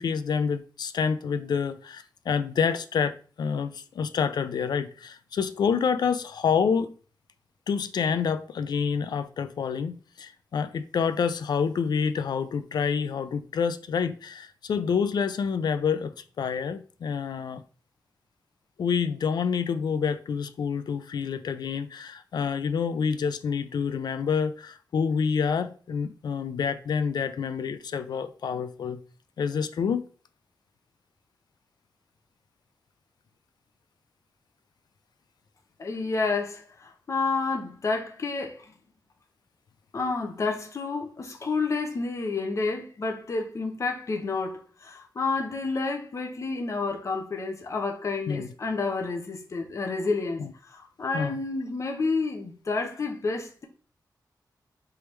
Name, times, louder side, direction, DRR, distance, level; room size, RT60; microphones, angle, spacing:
voice 1, 0.0-3.1 3.4-6.9 7.7-17.6 18.8-29.0 29.4-30.1 48.3-48.5 50.4-50.5 51.1-51.4, left 6 dB, 70° left, 0.4 m, -28 dB
voice 2, 35.8-38.7 39.9-53.7, left 3 dB, 45° left, 0.8 m, -30 dB
4.5 x 3.5 x 3.2 m
wide cardioid pair, 170°, 7 cm